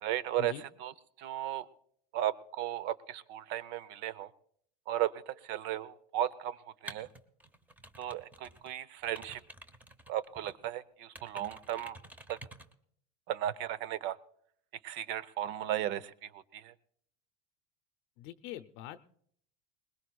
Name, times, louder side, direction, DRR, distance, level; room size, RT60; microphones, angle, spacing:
voice 1, 0.0-0.9 1.2-1.7 2.1-4.3 4.9-7.1 8.0-9.4 10.1-12.0 12.3-12.4 13.3-14.2 14.8-16.7, right 12 dB, 60° right, 18 dB, 0.8 m, -35 dB
sound 1, 6.9-8.7 9.0-10.7 11.1-12.7, right 1 dB, 10° right, 0.8 m, -50 dB
voice 2, 18.2-19.0, left 13 dB, 60° left, 10 dB, 0.7 m, -43 dB
22.0 x 20.5 x 2.3 m, 0.65 s
supercardioid pair, 135°, 21 cm